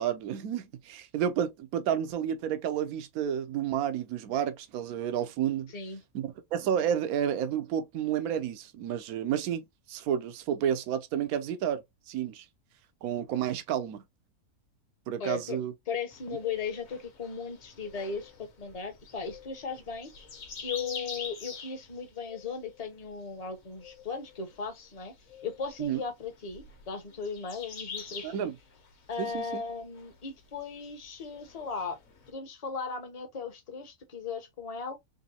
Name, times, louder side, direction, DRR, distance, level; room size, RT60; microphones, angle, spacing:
voice 1, 0.0-5.7 6.1-12.4 13.0-14.0 15.1-15.7 25.8-26.0 28.2-28.6 29.2-29.6, right 9 dB, 75° right, 1.1 m, -31 dB
voice 2, 15.2-15.6 15.9-18.3 18.6-20.1 20.6-25.1 25.4-28.5 29.1-32.0 32.3-35.0, left 5 dB, 30° left, 0.8 m, -37 dB
sound 1, 16.1-32.3, left 5 dB, 65° left, 1.4 m, -46 dB
4.0 x 3.1 x 2.8 m
omnidirectional pair, 1.6 m